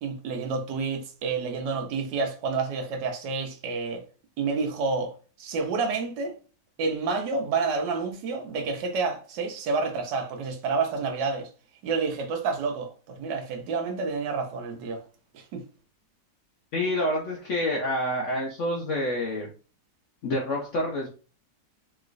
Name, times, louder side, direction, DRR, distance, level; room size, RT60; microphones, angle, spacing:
voice 1, 0.0-4.0 4.4-5.1 5.4-6.3 6.8-11.5 11.8-15.0 15.3-15.6, right 4 dB, 80° right, 1.3 m, -29 dB
voice 2, 16.7-19.5 20.2-21.1, left 1 dB, 70° left, 0.7 m, -27 dB
3.1 x 3.0 x 2.5 m
omnidirectional pair, 1.9 m